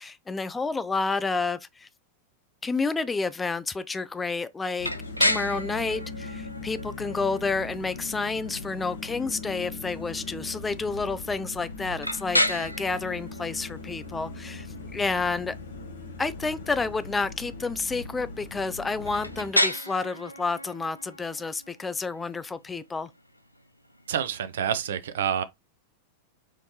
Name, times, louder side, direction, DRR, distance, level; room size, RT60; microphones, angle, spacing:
voice 1, 0.0-1.9 2.6-4.9 5.2-14.7 14.9-15.5 16.2-23.1, left 4 dB, 15° left, 0.3 m, -30 dB
sound 1, 4.8-24.6, left 1 dB, 90° left, 0.4 m, -33 dB
sound 2, 4.8-19.5, left 3 dB, 65° left, 0.9 m, -40 dB
voice 2, 24.1-25.4, right 9 dB, 60° right, 0.5 m, -28 dB
4.5 x 3.1 x 3.0 m
figure-of-eight pair, 90°, 0 cm